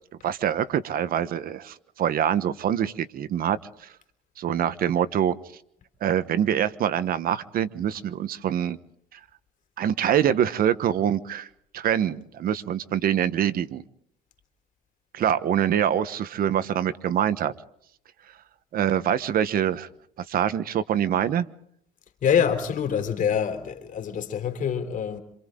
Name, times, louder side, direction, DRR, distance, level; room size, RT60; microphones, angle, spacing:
voice 1, 0.2-3.9 4.4-5.4 6.0-8.8 9.1-9.2 9.8-11.5 11.7-13.8 15.1-17.5 18.7-19.9 20.3-21.5, right 9 dB, 60° right, 1.3 m, -25 dB
voice 2, 22.2-25.2, left 8 dB, 50° left, 3.7 m, -25 dB
27.5 x 27.0 x 3.9 m
cardioid pair, 110°, 17 cm